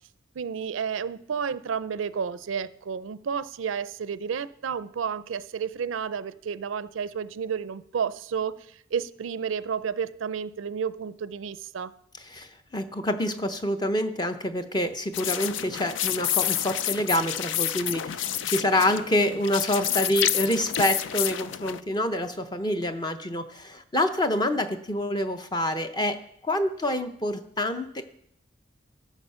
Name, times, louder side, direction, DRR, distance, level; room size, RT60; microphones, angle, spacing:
voice 1, 0.4-11.9, right 7 dB, 85° right, 0.4 m, -31 dB
voice 2, 12.3-28.0, left 1 dB, 20° left, 0.7 m, -27 dB
sound 1, 15.1-21.8, left 11 dB, 75° left, 0.4 m, -29 dB
12.5 x 7.0 x 5.6 m
head